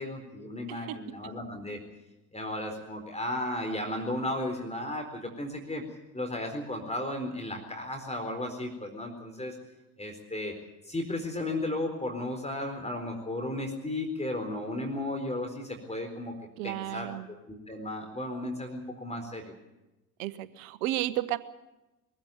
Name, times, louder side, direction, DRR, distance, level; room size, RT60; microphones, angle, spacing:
voice 1, 0.0-1.8 2.3-5.8 6.1-9.6 10.0-10.5 10.9-16.3 16.6-17.1 17.5-19.5, left 1 dB, 15° left, 4 dB, 4.3 m, -34 dB
voice 2, 0.7-1.3 16.6-17.3 20.2-21.4, right 15 dB, 70° right, 16 dB, 1.2 m, -33 dB
22.0 x 15.5 x 9.3 m, 1.0 s
hypercardioid pair, 55°, 42 cm